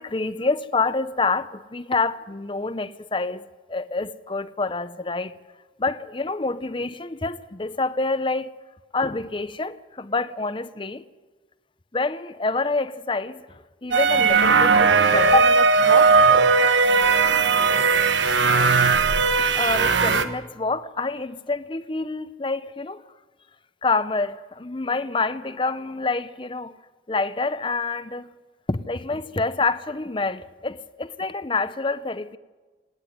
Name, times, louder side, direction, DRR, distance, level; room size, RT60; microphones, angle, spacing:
voice 1, 0.0-5.4 5.8-8.5 8.9-11.0 11.9-13.4 13.8-16.5 17.8-18.0 19.3-23.0 23.8-26.7 27.1-28.3 28.7-32.4, left 3 dB, 25° left, 0.7 m, -27 dB
sound 1, 13.9-20.2, right 4 dB, 85° right, 1.2 m, -18 dB
27.0 x 9.8 x 9.7 m
head